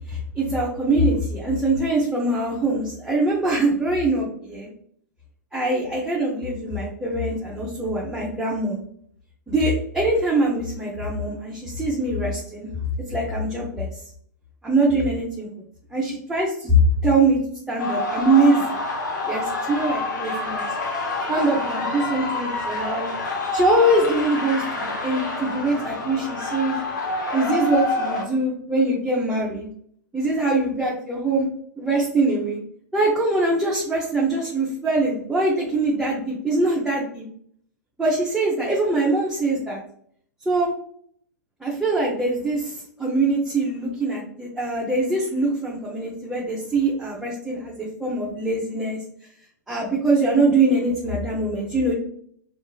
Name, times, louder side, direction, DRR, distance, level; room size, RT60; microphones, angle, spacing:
voice 1, 0.1-4.7 5.5-8.8 9.5-12.7 13.1-13.9 14.6-15.5 15.9-17.4 17.7-18.7 19.2-20.7 21.3-23.1 23.5-26.8 27.3-29.7 30.1-31.5 31.8-32.6 32.9-37.3 38.0-39.8 40.5-40.7 41.6-49.0 49.7-51.9, right 2 dB, 5° right, -5 dB, 0.5 m, -23 dB
sound 1, 17.8-28.2, left 2 dB, 70° left, 0.7 m, -27 dB
2.9 x 2.3 x 2.2 m, 0.63 s
figure-of-eight pair, 105°, 10 cm